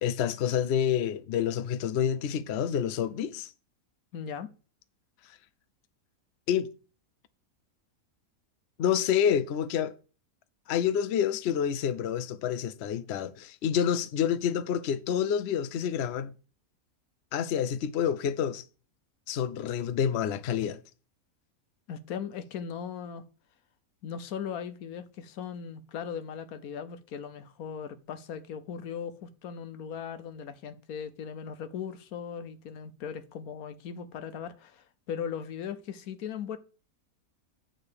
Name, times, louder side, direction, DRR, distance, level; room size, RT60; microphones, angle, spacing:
voice 1, 0.0-3.5 6.5-6.7 8.8-9.9 10.7-16.3 17.3-18.6 19.3-20.8, left 8 dB, 60° left, 0.7 m, -28 dB
voice 2, 4.1-4.5 21.9-23.3 24.0-36.6, left 7 dB, 80° left, 1.2 m, -38 dB
8.6 x 3.8 x 6.4 m
omnidirectional pair, 1.5 m